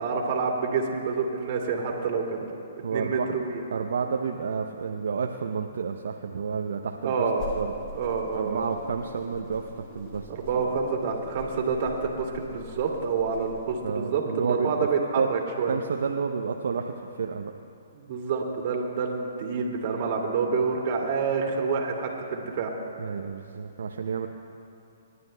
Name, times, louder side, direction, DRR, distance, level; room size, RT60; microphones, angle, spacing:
voice 1, 0.0-2.4 2.9-3.5 7.0-7.4 8.0-8.6 10.3-15.8 17.9-22.7, right 5 dB, 50° right, 0 dB, 2.2 m, -28 dB
voice 2, 2.8-3.3 3.7-7.1 7.5-7.7 8.3-10.3 10.5-10.7 13.8-15.3 15.7-17.5 23.0-24.3, right 6 dB, 70° right, 3 dB, 0.6 m, -30 dB
sound 1, 7.3-13.8, left 1 dB, 30° left, 3.7 m, -43 dB
30.0 x 11.0 x 2.2 m, 2.6 s
hypercardioid pair, 130°, 0 cm